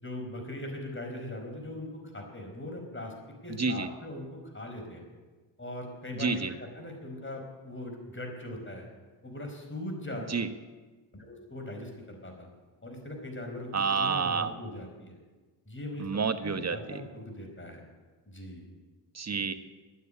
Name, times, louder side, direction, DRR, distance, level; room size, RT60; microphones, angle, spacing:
voice 1, 0.0-3.1 3.4-5.1 5.6-8.9 9.2-10.4 11.1-12.5 12.8-15.2 15.7-16.1 16.4-17.8 18.3-18.7, left 1 dB, 25° left, 3 dB, 4.7 m, -40 dB
voice 2, 3.6-3.9 6.2-6.5 10.3-10.5 13.7-14.5 16.0-17.0 19.1-19.5, right 5 dB, 35° right, 9 dB, 1.3 m, -29 dB
11.5 x 9.8 x 9.9 m, 1.3 s
supercardioid pair, 55°, 46 cm